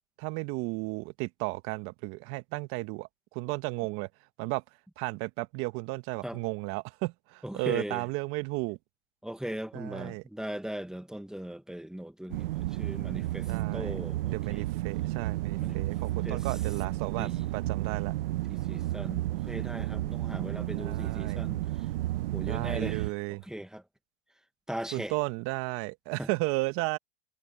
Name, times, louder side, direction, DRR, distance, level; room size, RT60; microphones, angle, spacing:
voice 1, 0.2-4.1 4.4-4.6 5.0-8.8 9.7-10.2 13.5-14.0 14.3-18.1 20.7-21.4 22.5-23.4 24.9-27.0, right 23 dB, 45° right, 1.4 m, -34 dB
voice 2, 7.4-8.0 9.2-14.6 15.6-15.8 16.2-16.6 17.2-17.4 18.5-21.6 22.3-23.8 24.7-25.1 26.2-26.3, right 1 dB, ahead, 1.6 m, -39 dB
sound 1, 12.3-23.1, right 16 dB, 65° right, 1.1 m, -32 dB
hypercardioid pair, 115°, 31 cm